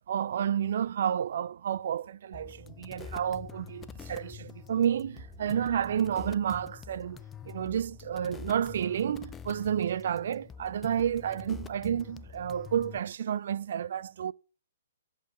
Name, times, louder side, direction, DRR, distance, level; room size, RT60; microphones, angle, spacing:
voice 1, 0.1-7.2 7.4-14.3, right 9 dB, 55° right, 0.5 m, -30 dB
sound 1, 2.3-13.0, left 7 dB, 15° left, 0.5 m, -46 dB
8.3 x 6.7 x 5.5 m
figure-of-eight pair, 125°, 0 cm